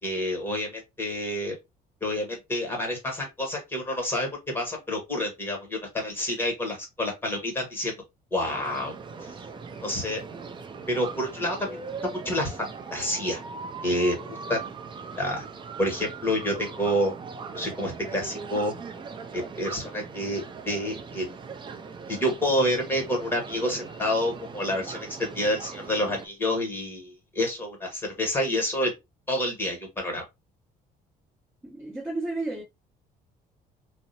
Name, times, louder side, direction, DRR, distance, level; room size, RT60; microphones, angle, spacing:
voice 1, 0.0-1.6 2.0-7.9 8.3-8.9 9.8-10.2 10.9-13.4 13.8-14.6 15.2-15.4 15.8-17.1 17.5-18.7 19.3-21.3 22.1-28.9 29.3-30.2, left 1 dB, 15° left, 1.3 m, -28 dB
sound 1, 8.4-26.3, right 5 dB, 30° right, 0.4 m, -40 dB
voice 2, 31.6-32.6, right 2 dB, 15° right, 1.0 m, -32 dB
2.6 x 2.0 x 2.7 m
cardioid pair, 110°, 17 cm